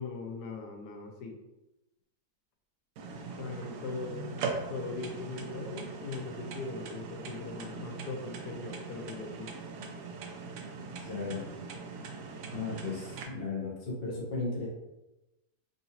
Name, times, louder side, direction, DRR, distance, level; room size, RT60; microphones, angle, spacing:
voice 1, 0.0-1.4 3.4-4.4 4.7-9.6, left 4 dB, 75° left, 3 dB, 1.2 m, -40 dB
sound 1, 3.0-13.2, right 4 dB, 70° right, 0.9 m, -41 dB
voice 2, 11.0-11.4 12.5-14.7, left 3 dB, 45° left, -4 dB, 0.9 m, -35 dB
3.8 x 2.6 x 2.8 m, 0.98 s
omnidirectional pair, 1.8 m